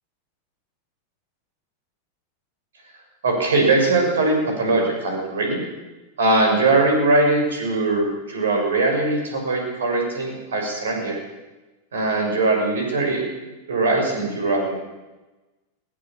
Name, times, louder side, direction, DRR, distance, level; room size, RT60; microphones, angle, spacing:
voice 1, 3.2-5.6 6.2-11.2 11.9-13.2 13.7-14.7, right 2 dB, 65° right, 2 dB, 6.4 m, -21 dB
20.0 x 18.5 x 7.3 m, 1.1 s
figure-of-eight pair, 90°, 0 cm